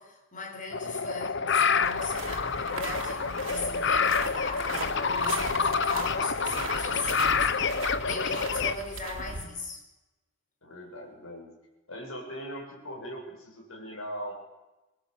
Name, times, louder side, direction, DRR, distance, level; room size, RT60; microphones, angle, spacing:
voice 1, 0.0-9.8, left 2 dB, 40° left, 5.3 m, -39 dB
sound 1, 0.7-8.7, left 5 dB, 55° left, 0.9 m, -27 dB
sound 2, 1.8-9.5, right 4 dB, 65° right, 2.8 m, -39 dB
voice 2, 10.6-11.5 11.9-14.3, equal, 75° left, 7.8 m, -40 dB
24.5 x 19.5 x 8.6 m
head